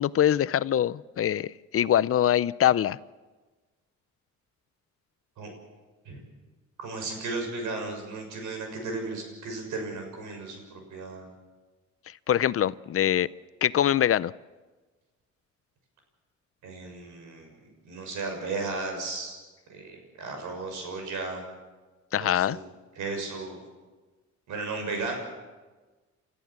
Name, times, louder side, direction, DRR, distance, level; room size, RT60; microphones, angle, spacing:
voice 1, 0.0-3.0 12.3-13.3 13.6-14.3 22.1-22.6, left 10 dB, 50° left, 18 dB, 0.6 m, -23 dB
voice 2, 6.8-11.2 16.6-17.5 17.8-19.4 19.7-21.4 22.2-22.7 23.0-23.6 24.5-25.2, right 3 dB, 80° right, 4 dB, 6.5 m, -35 dB
30.0 x 14.0 x 7.3 m, 1.3 s
cardioid pair, 90°, 30 cm